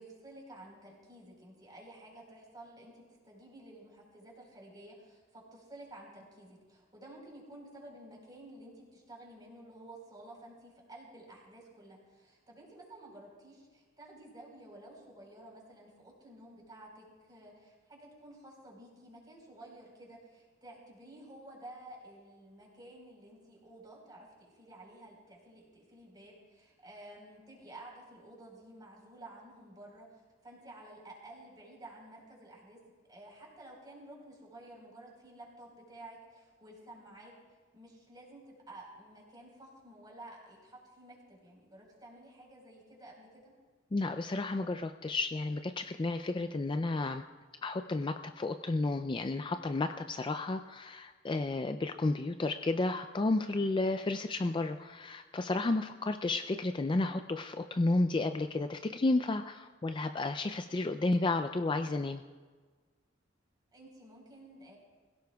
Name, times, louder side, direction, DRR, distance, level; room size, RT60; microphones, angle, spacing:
voice 1, 0.0-32.8 33.1-37.3 37.7-43.5 63.7-64.8, right 1 dB, 20° right, -2 dB, 4.2 m, -52 dB
voice 2, 43.9-47.2 47.6-62.2, left 2 dB, 25° left, 8 dB, 0.4 m, -32 dB
21.5 x 16.5 x 2.3 m, 1.5 s
head